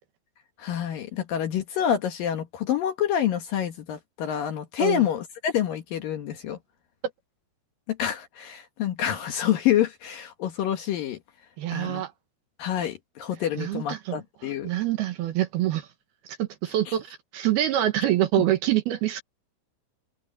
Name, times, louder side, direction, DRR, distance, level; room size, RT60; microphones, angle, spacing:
voice 1, 0.6-6.6 7.9-11.2 11.7-12.0 12.6-14.7, left 10 dB, 65° left, 2.6 m, -27 dB
voice 2, 11.6-12.1 13.5-15.9 16.4-19.2, right 13 dB, 70° right, 2.8 m, -26 dB
omnidirectional pair, 5.2 m